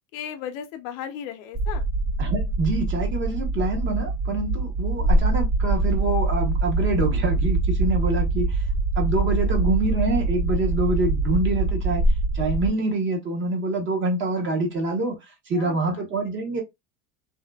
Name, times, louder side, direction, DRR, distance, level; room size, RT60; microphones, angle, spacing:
voice 1, 0.1-1.9 5.0-5.2 9.4-9.5 15.5-16.0, left 9 dB, 65° left, 0.7 m, -36 dB
Stressing Ambient, 1.6-12.7, right 2 dB, 45° right, 1.4 m, -24 dB
voice 2, 2.2-8.6 9.0-12.1 12.3-16.6, right 2 dB, 30° right, 0.8 m, -26 dB
2.7 x 2.4 x 2.2 m
supercardioid pair, 125°, 42 cm